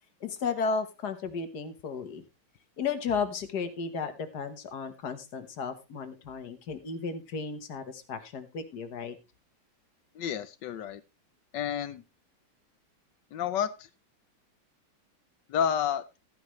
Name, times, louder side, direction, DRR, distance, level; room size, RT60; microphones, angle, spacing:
voice 1, 0.2-2.2 2.8-9.2, left 5 dB, 50° left, 9 dB, 1.7 m, -34 dB
voice 2, 10.1-11.0 11.5-12.0 13.3-13.9 15.5-16.0, left 8 dB, 70° left, 14 dB, 1.1 m, -30 dB
14.0 x 9.9 x 3.1 m, 0.27 s
omnidirectional pair, 2.4 m